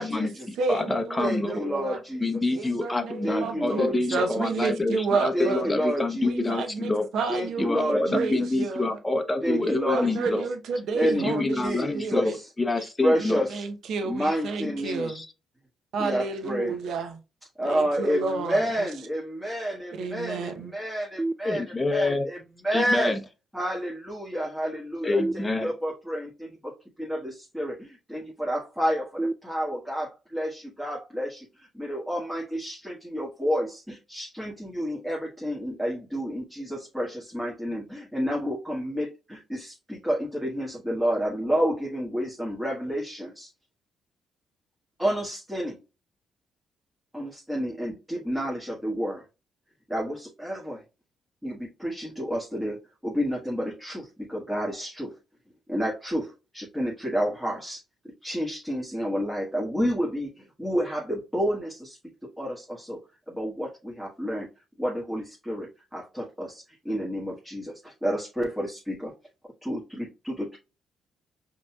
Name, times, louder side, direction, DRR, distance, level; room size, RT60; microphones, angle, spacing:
voice 1, 0.0-1.7 2.2-7.1 7.6-10.5 11.0-13.4 14.6-15.3 21.4-22.3 22.7-23.2 25.0-25.7, left 2 dB, 15° left, 0.6 m, -27 dB
voice 2, 0.6-2.0 2.5-5.7 6.2-8.9 9.5-11.6 11.9-12.4 13.2-15.2 15.9-17.2 17.6-18.9 19.9-20.7, right 4 dB, 75° right, 0.7 m, -31 dB
voice 3, 1.2-2.3 3.2-4.2 5.3-6.6 7.3-8.3 9.4-10.4 10.9-12.4 13.0-13.6 14.0-15.1 16.0-16.8 17.6-21.6 21.9-22.4 22.6-23.2 23.5-43.5 45.0-45.8 47.1-49.2 49.9-50.8 51.4-55.1 55.7-57.8 58.2-62.0 62.4-63.0 63.3-64.5 64.8-69.1 69.6-70.6, equal, 5° right, 1.5 m, -30 dB
sound 1, 21.2-22.1 25.2-26.2 29.2-30.2, right 2 dB, 30° right, 0.3 m, -34 dB
5.2 x 2.9 x 2.3 m
cardioid pair, 75°, 0 cm